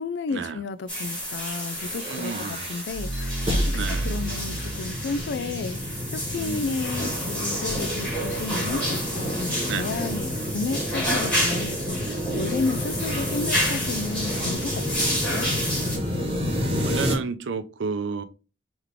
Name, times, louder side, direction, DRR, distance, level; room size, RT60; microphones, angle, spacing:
voice 1, 0.0-10.3 10.5-15.5, left 4 dB, 65° left, 0.4 m, -32 dB
sound 1, 0.9-16.0, equal, 5° left, 1.9 m, -30 dB
sound 2, 1.4-17.1, equal, 30° right, 1.3 m, -30 dB
voice 2, 2.1-2.7 3.7-4.1 6.3-6.8 9.7-9.9 16.8-18.2, right 5 dB, 90° right, 0.5 m, -31 dB
sound 3, 7.0-13.0, right 2 dB, 25° left, 1.5 m, -39 dB
3.4 x 3.2 x 3.5 m
head